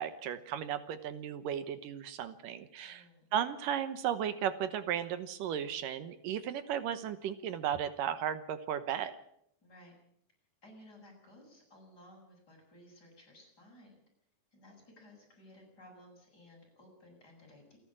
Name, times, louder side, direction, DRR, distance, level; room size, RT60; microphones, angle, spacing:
voice 1, 0.0-3.0 3.3-9.2, right 9 dB, 75° right, 12 dB, 2.5 m, -35 dB
voice 2, 2.9-3.3 9.6-10.0 10.6-14.0 14.5-17.8, left 1 dB, 25° left, -1 dB, 8.5 m, -57 dB
28.5 x 11.0 x 8.7 m, 0.70 s
omnidirectional pair, 4.2 m